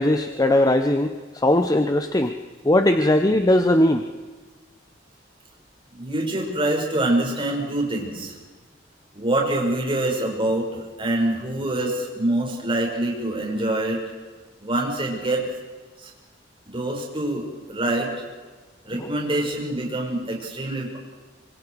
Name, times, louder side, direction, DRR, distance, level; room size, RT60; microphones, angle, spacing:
voice 1, 0.0-2.4 2.6-4.1, left 1 dB, 20° left, 7 dB, 0.9 m, -19 dB
voice 2, 5.9-8.4 9.1-14.0 14.6-15.4 16.0-16.1 16.7-18.1 18.8-21.0, right 1 dB, 30° right, -1 dB, 5.5 m, -25 dB
26.0 x 26.0 x 4.8 m, 1.3 s
head